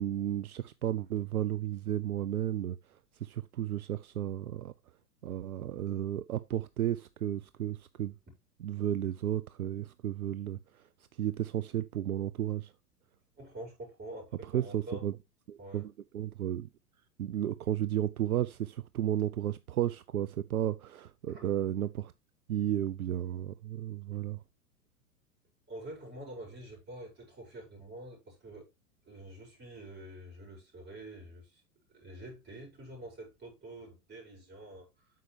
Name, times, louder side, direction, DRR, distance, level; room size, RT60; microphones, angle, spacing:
voice 1, 0.0-2.8 3.2-4.7 5.2-8.1 8.6-10.8 11.2-12.7 14.4-15.2 15.5-16.7 17.2-22.1 22.5-24.4, right 12 dB, 70° right, 0.6 m, -33 dB
voice 2, 13.4-15.0 15.6-15.9 21.3-21.5 25.7-28.6 29.1-31.6 31.9-35.1, right 1 dB, 20° right, 6.1 m, -47 dB
9.3 x 6.5 x 3.3 m
figure-of-eight pair, 100°, 46 cm